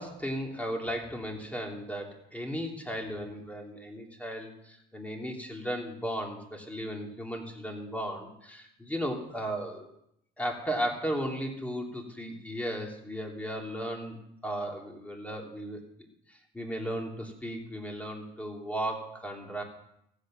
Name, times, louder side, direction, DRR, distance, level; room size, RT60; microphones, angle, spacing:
voice 1, 0.0-9.8 10.4-14.2 14.4-15.8 16.3-19.6, equal, 5° left, 1 dB, 3.2 m, -35 dB
15.0 x 8.4 x 6.5 m, 0.77 s
cardioid pair, 90°, 20 cm